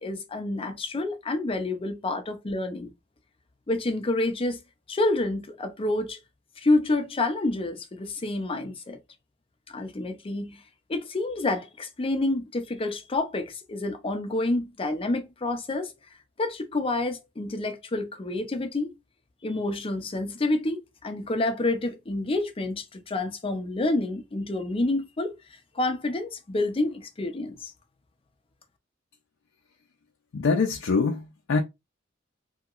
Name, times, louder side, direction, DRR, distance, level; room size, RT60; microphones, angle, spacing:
voice 1, 0.0-2.9 3.7-4.6 4.9-6.2 6.6-9.0 9.7-10.6 10.9-15.9 16.4-18.9 19.4-25.4 25.7-27.7, left 2 dB, 30° left, 0.5 m, -28 dB
voice 2, 30.3-31.6, left 4 dB, 80° left, 0.5 m, -24 dB
2.9 x 2.8 x 2.4 m
head